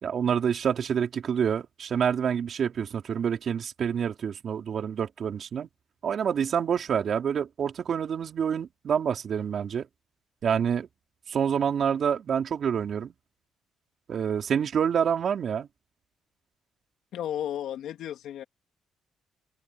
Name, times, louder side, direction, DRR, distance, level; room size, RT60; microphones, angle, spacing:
voice 1, 0.0-5.7 6.0-9.9 10.4-10.9 11.3-13.1 14.1-15.7, right 7 dB, 55° right, 3.8 m, -27 dB
voice 2, 17.1-18.4, left 11 dB, 80° left, 2.5 m, -33 dB
cardioid pair, 90°, 0 cm